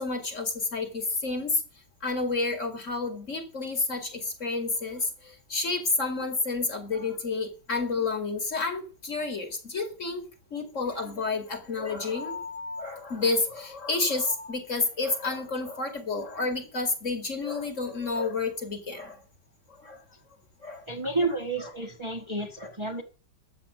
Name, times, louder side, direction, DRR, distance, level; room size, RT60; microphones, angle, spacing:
voice 1, 0.0-1.6 2.0-19.2 19.8-20.0 20.6-20.9 21.6-21.7 22.6-22.7, left 3 dB, 45° left, 2.6 m, -30 dB
voice 2, 20.9-23.0, right 2 dB, 20° right, 1.5 m, -31 dB
13.5 x 8.0 x 6.2 m
omnidirectional pair, 1.8 m